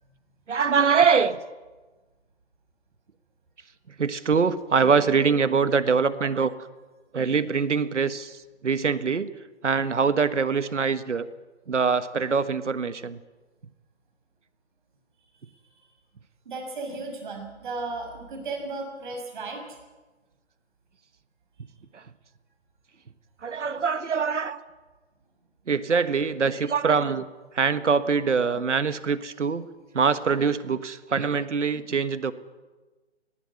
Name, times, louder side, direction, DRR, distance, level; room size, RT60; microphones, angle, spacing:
voice 1, 0.5-1.4 4.0-6.5 7.1-9.3 9.6-11.3 11.7-13.2 21.9-22.0 23.4-24.6 25.7-27.2 27.5-29.7 29.9-32.3, right 5 dB, 80° right, 13 dB, 1.5 m, -23 dB
voice 2, 15.4-15.9 16.4-19.8, right 3 dB, 45° right, 3 dB, 6.3 m, -35 dB
19.5 x 16.0 x 9.7 m, 1.2 s
hypercardioid pair, 165°, 35 cm